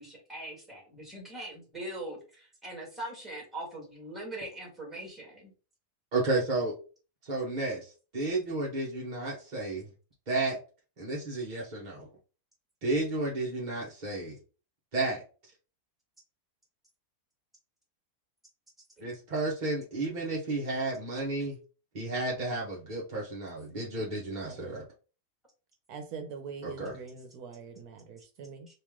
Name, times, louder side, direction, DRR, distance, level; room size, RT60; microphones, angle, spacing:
voice 1, 0.0-5.5 19.0-19.1, right 1 dB, ahead, 1.4 m, -41 dB
voice 2, 6.1-6.7 7.2-7.8 8.1-9.8 10.3-10.6 11.0-12.1 12.8-14.3 14.9-15.2 19.0-21.6 21.9-24.8 26.6-27.0, right 2 dB, 35° right, 0.9 m, -32 dB
voice 3, 24.5-24.8 25.9-28.7, right 5 dB, 80° right, 1.2 m, -43 dB
3.1 x 2.9 x 3.6 m
omnidirectional pair, 1.6 m